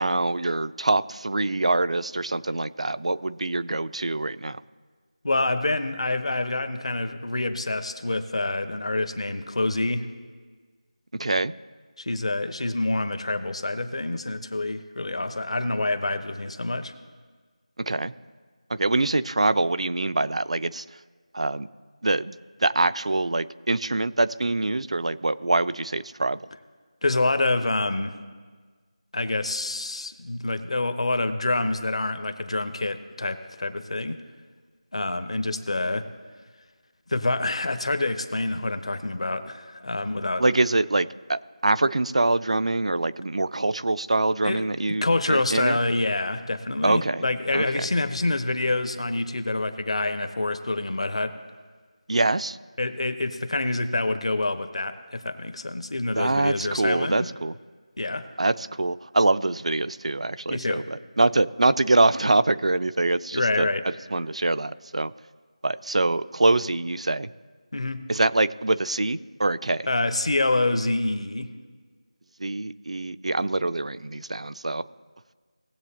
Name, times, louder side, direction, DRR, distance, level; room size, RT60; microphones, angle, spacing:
voice 1, 0.0-4.6 11.2-11.5 17.9-18.1 18.7-20.8 21.3-21.7 22.0-22.4 22.6-26.4 40.4-45.8 46.8-47.3 47.5-47.9 52.1-52.6 56.1-57.5 58.4-63.7 64.1-65.1 65.6-67.3 68.1-69.9 72.4-74.8, right 2 dB, 65° right, 14 dB, 0.4 m, -24 dB
voice 2, 5.2-10.1 12.0-16.9 27.0-28.2 29.1-34.2 34.9-36.1 37.1-40.4 44.4-44.6 45.0-51.3 52.8-57.3 58.0-58.3 60.5-60.8 63.3-63.8 67.7-68.0 69.9-71.5, left 2 dB, 60° left, 9 dB, 1.0 m, -27 dB
19.0 x 8.0 x 2.9 m, 1.5 s
figure-of-eight pair, 170°, 4 cm